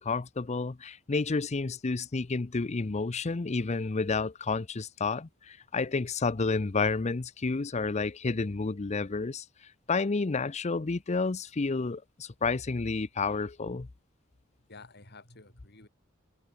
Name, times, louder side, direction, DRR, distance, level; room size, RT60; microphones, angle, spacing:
voice 1, 0.0-9.5 9.9-13.9, left 4 dB, 35° left, 0.6 m, -30 dB
voice 2, 14.6-15.9, left 3 dB, 55° left, 7.5 m, -51 dB
head